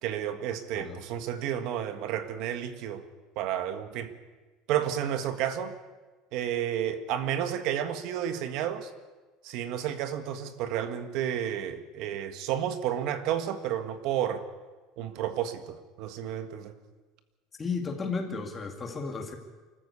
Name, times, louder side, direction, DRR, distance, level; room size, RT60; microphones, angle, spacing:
voice 1, 0.0-3.0 3.3-4.1 4.7-5.7 6.3-8.9 9.4-14.4 15.0-16.7, right 10 dB, 55° right, 9 dB, 1.6 m, -31 dB
voice 2, 17.6-19.4, left 4 dB, 15° left, 3 dB, 2.1 m, -33 dB
24.5 x 14.5 x 8.3 m, 1.3 s
cardioid pair, 175°, 0 cm